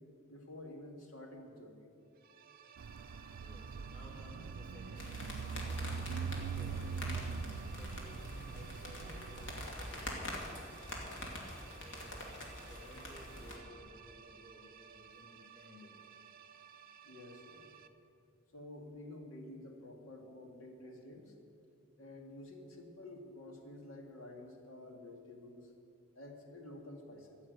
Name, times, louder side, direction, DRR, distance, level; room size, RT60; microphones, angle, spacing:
voice 1, 0.3-1.9 17.0-17.6 18.5-21.3 22.0-25.7 26.2-27.4, left 1 dB, 80° left, 2 dB, 2.1 m, -50 dB
sound 1, 2.1-17.9, right 7 dB, 45° right, 0.7 m, -56 dB
sound 2, 2.8-9.7, right 5 dB, 85° right, 0.4 m, -42 dB
voice 2, 3.4-6.0 6.4-6.8 7.6-10.3 11.4-12.3 12.6-16.0, left 1 dB, 30° left, -9 dB, 4.2 m, -57 dB
sound 3, 5.0-13.6, left 1 dB, 60° left, 2.5 m, -45 dB
14.0 x 7.4 x 9.4 m, 2.7 s
head